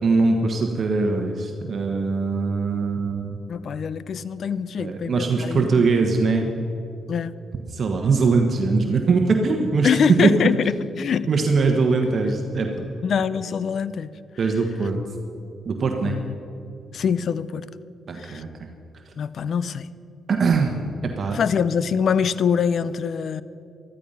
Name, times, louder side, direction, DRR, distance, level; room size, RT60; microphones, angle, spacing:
voice 1, 0.0-3.4 4.8-6.5 7.7-10.3 11.3-12.9 14.4-15.0 15.6-16.2 18.1-18.5 20.3-21.4, right 4 dB, 50° right, 3 dB, 1.3 m, -21 dB
voice 2, 3.5-5.9 7.1-7.3 9.8-10.7 11.0-11.3 13.0-14.1 16.0-16.3 16.9-17.7 18.2-18.4 19.2-19.9 21.3-23.4, left 7 dB, 60° left, 17 dB, 0.5 m, -24 dB
14.0 x 13.5 x 5.6 m, 2.8 s
cardioid pair, 85°, 0 cm